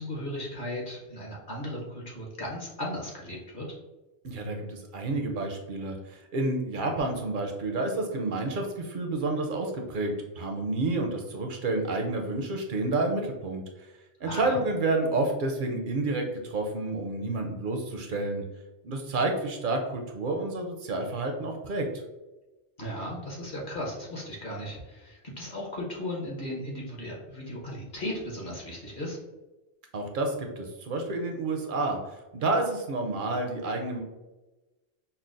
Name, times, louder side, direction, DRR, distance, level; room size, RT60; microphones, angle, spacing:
voice 1, 0.0-3.6 14.2-14.6 22.8-29.2, left 1 dB, 50° left, -3 dB, 1.0 m, -36 dB
voice 2, 4.2-13.9 14.2-18.4 18.8-21.9 29.9-34.0, right 2 dB, 60° right, 3 dB, 0.6 m, -30 dB
5.5 x 2.0 x 2.5 m, 1.1 s
omnidirectional pair, 1.2 m